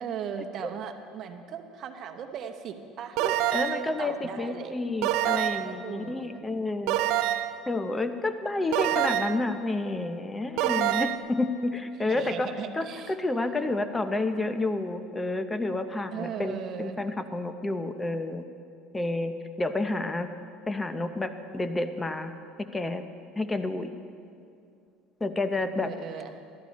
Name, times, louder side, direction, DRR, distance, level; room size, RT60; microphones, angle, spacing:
voice 1, 0.0-3.2 3.7-4.7 5.6-6.4 12.1-13.1 16.1-17.0 25.8-26.3, right 8 dB, 50° right, 7 dB, 0.9 m, -38 dB
voice 2, 3.2-7.0 7.7-18.4 18.9-20.3 20.7-22.3 22.7-23.0 23.4-23.9 25.2-25.9, left 2 dB, 15° left, 9 dB, 0.7 m, -30 dB
sound 1, 3.2-3.9 5.0-5.8 6.9-7.6 8.7-9.5 10.6-11.2, right 13 dB, 70° right, 0.5 m, -26 dB
13.0 x 12.5 x 4.2 m, 2.4 s
supercardioid pair, 90°, 0 cm